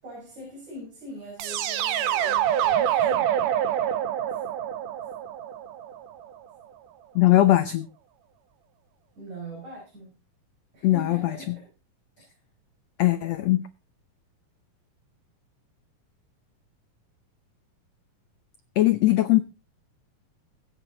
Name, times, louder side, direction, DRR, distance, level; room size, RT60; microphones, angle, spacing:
voice 1, 0.0-3.4 4.3-4.4 9.2-10.2 10.7-11.7 12.2-12.4, right 1 dB, 50° right, -3 dB, 7.1 m, -42 dB
sound 1, 1.4-6.3, right 10 dB, 70° right, 2.4 m, -26 dB
voice 2, 7.1-7.9 10.8-11.3 13.0-13.6 18.8-19.4, left 15 dB, 85° left, 12 dB, 1.4 m, -20 dB
21.5 x 8.4 x 3.9 m, 0.31 s
omnidirectional pair, 4.1 m